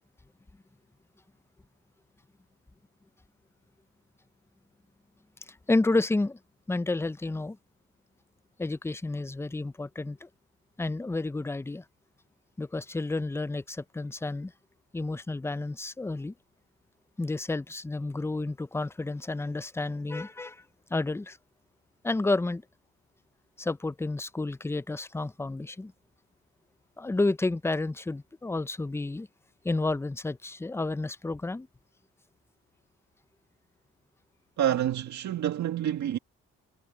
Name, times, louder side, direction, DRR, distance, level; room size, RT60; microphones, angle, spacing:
voice 1, 5.5-6.4 6.7-7.6 8.6-10.3 10.8-11.8 12.6-14.5 14.9-16.3 17.2-20.6 20.9-21.4 22.0-22.6 23.6-25.9 27.0-29.3 29.6-31.7, left 2 dB, 10° left, 0.5 m, -30 dB
voice 2, 34.6-36.2, right 11 dB, 70° right, 1.9 m, -28 dB
cardioid pair, 90°, 30 cm